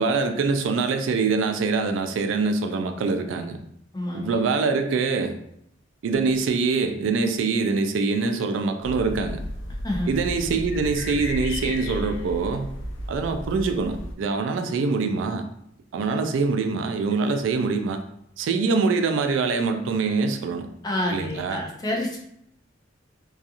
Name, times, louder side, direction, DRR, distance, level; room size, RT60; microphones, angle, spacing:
voice 1, 0.0-3.6 4.1-5.4 6.0-9.4 10.1-12.7 13.1-15.5 15.9-18.0 18.4-20.7 21.1-21.6, right 4 dB, 85° right, 6 dB, 0.3 m, -24 dB
voice 2, 3.9-4.3 9.8-10.1 20.8-22.2, left 1 dB, 20° left, 0 dB, 0.5 m, -28 dB
sound 1, 8.8-14.1, left 1 dB, 80° left, 0.4 m, -33 dB
2.4 x 2.3 x 2.8 m, 0.72 s
head